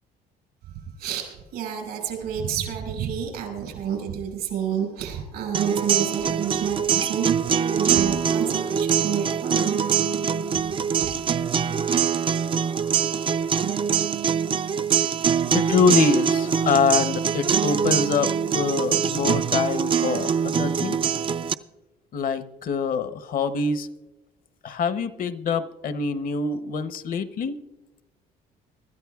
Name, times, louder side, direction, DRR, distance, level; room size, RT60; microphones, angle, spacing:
voice 1, 1.0-9.8 11.0-11.1, right 8 dB, 85° right, 2 dB, 5.3 m, -29 dB
sound 1, 5.5-21.5, right 7 dB, 30° right, 0.4 m, -23 dB
voice 2, 15.5-21.2 22.1-23.9 24.6-27.6, left 5 dB, 55° left, 12 dB, 0.8 m, -25 dB
24.0 x 13.0 x 2.3 m, 1.0 s
cardioid pair, 110°, 17 cm